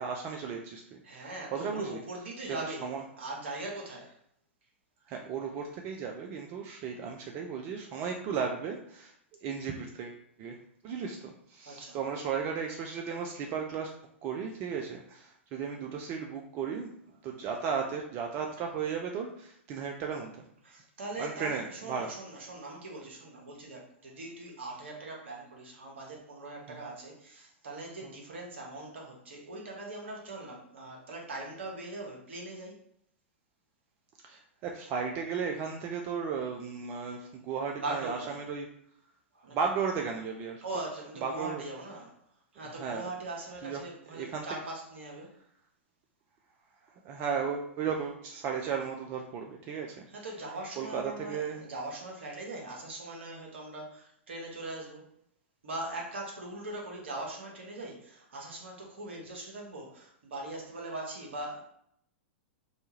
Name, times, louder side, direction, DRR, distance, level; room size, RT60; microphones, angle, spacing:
voice 1, 0.0-2.0 2.8-3.0 5.1-9.1 9.4-10.6 10.8-13.9 14.2-16.9 17.2-20.5 21.2-22.1 26.7-26.8 28.0-28.1 34.2-38.7 39.5-40.6 41.2-41.6 42.6-43.1 43.6-43.8 44.1-44.5 47.0-50.1 50.8-51.6, right 6 dB, 35° right, 2 dB, 0.4 m, -35 dB
voice 2, 1.0-4.1 11.6-12.0 20.6-32.8 37.8-38.4 39.3-39.6 40.6-42.2 42.5-45.3 50.1-55.1 55.6-61.6, right 2 dB, 65° right, -1 dB, 0.9 m, -41 dB
2.7 x 2.3 x 2.8 m, 0.69 s
figure-of-eight pair, 100°, 7 cm